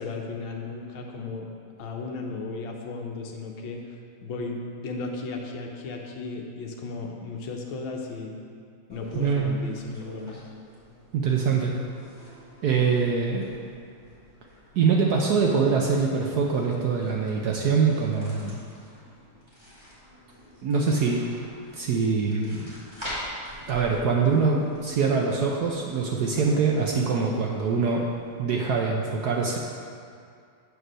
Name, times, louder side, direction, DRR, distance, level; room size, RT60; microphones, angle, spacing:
voice 1, 0.0-1.5 1.8-3.8 4.2-8.3 8.9-10.4, left 3 dB, 75° left, 1 dB, 1.6 m, -35 dB
sound 1, 8.9-28.4, equal, 15° right, 2.1 m, -46 dB
voice 2, 9.1-9.6 11.1-11.7 12.6-13.5 14.7-18.6 20.6-21.2 21.8-22.7 23.7-28.1 28.4-29.6, right 5 dB, 65° right, -1 dB, 1.0 m, -24 dB
7.9 x 4.8 x 6.2 m, 2.3 s
omnidirectional pair, 2.2 m